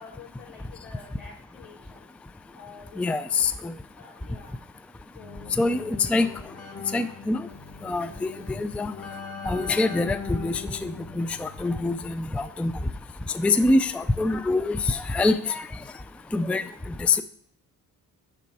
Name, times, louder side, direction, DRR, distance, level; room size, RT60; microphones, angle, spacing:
voice 1, 0.0-2.1 2.5-3.4 3.9-4.5 5.1-5.9 10.1-10.2, left 5 dB, 75° left, -4 dB, 3.2 m, -48 dB
voice 2, 3.0-3.5 5.6-6.3 6.9-7.4 7.8-8.3 8.6-8.9 9.5-12.7 13.3-15.6 16.3-16.6 17.1-17.2, left 3 dB, 5° left, 11 dB, 0.4 m, -24 dB
Keyboard (musical), 5.2-12.5, left 5 dB, 40° left, 1.7 m, -41 dB
6.9 x 5.7 x 4.7 m, 0.62 s
cardioid pair, 70°, 36 cm